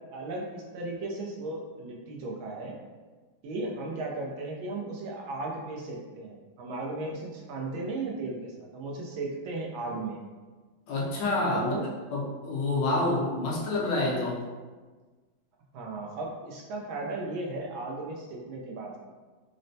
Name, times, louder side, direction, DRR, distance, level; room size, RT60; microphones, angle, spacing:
voice 1, 0.1-2.8 3.4-10.2 11.5-11.9 15.7-19.0, right 2 dB, 90° right, -1 dB, 1.5 m, -36 dB
voice 2, 10.9-11.7 12.1-14.4, left 2 dB, 75° left, -4 dB, 1.3 m, -28 dB
4.1 x 2.1 x 2.6 m, 1.4 s
omnidirectional pair, 2.1 m